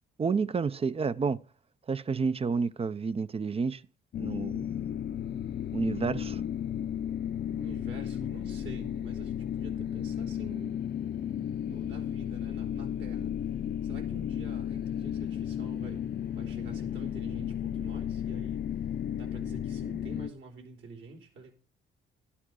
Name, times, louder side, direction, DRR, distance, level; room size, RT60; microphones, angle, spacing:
voice 1, 0.2-1.4 1.9-3.8 4.2-4.7 5.7-6.4, right 5 dB, 30° right, 0.6 m, -30 dB
sound 1, 4.1-20.3, left 9 dB, 55° left, 0.7 m, -34 dB
voice 2, 7.5-10.8 11.1-13.6 13.8-18.7 19.1-21.5, right 3 dB, 70° right, 4.4 m, -48 dB
13.0 x 10.0 x 4.8 m
cardioid pair, 90°, 20 cm